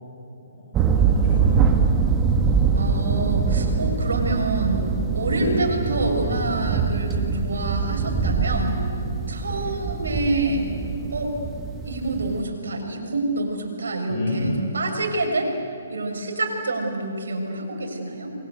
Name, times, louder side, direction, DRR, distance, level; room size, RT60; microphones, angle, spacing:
voice 1, 0.5-2.2 5.4-5.6 9.4-9.7 14.1-14.6, left 2 dB, 40° left, -4 dB, 7.0 m, -31 dB
sound 1, 0.7-12.4, right 5 dB, 20° right, 2.0 m, -23 dB
voice 2, 2.7-8.8 9.3-10.7 11.1-11.3 11.8-15.5 15.9-18.3, right 2 dB, 80° right, 2 dB, 6.7 m, -27 dB
29.0 x 23.5 x 8.3 m, 2.7 s
hypercardioid pair, 145°, 0 cm